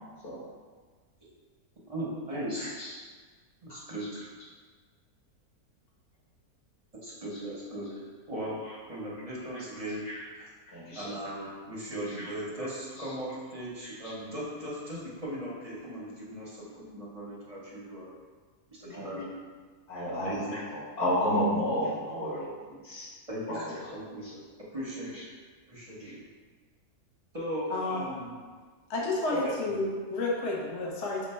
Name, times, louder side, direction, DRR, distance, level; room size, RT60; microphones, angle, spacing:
voice 1, 1.9-2.7 3.6-4.0 7.0-8.6 8.9-10.0 10.4-10.5 10.9-18.1 18.7-19.3 20.2-20.6 23.3-24.3 24.7-25.2 25.7-26.1 27.3-28.3 29.3-29.8, equal, 35° right, -6 dB, 0.6 m, -38 dB
voice 2, 2.6-3.0 7.3-7.4 8.6-8.7 10.0-10.2 10.7-11.5 12.0-12.3 13.0-13.1 13.8-14.1 18.9-19.1 19.9-22.5 22.8-23.1 23.5-23.9 24.2-24.4 25.1-25.2 26.0-26.1, equal, 75° left, -7 dB, 2.0 m, -32 dB
voice 3, 27.7-28.1 28.9-31.3, left 2 dB, 60° left, -2 dB, 0.8 m, -30 dB
5.1 x 2.1 x 4.2 m, 1.5 s
omnidirectional pair, 1.6 m